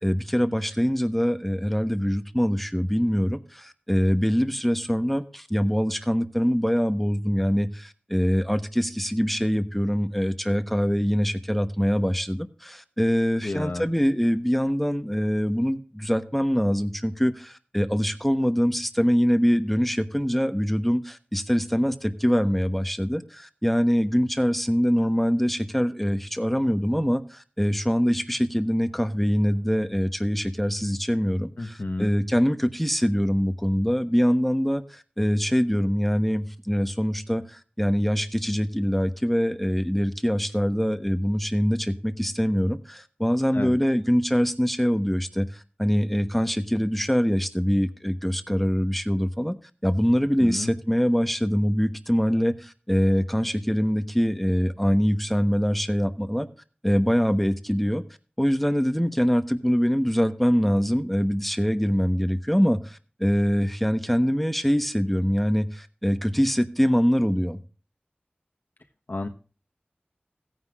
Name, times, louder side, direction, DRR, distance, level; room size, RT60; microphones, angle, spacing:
voice 1, 0.0-49.6 49.8-56.5 56.8-58.0 58.4-67.6, equal, 5° left, 9 dB, 1.0 m, -24 dB
voice 2, 13.4-13.9 31.6-32.1 43.5-43.7 50.4-50.7 69.1-69.3, left 2 dB, 65° left, 4 dB, 1.0 m, -31 dB
16.5 x 9.6 x 2.4 m, 0.37 s
wide cardioid pair, 50°, 4 cm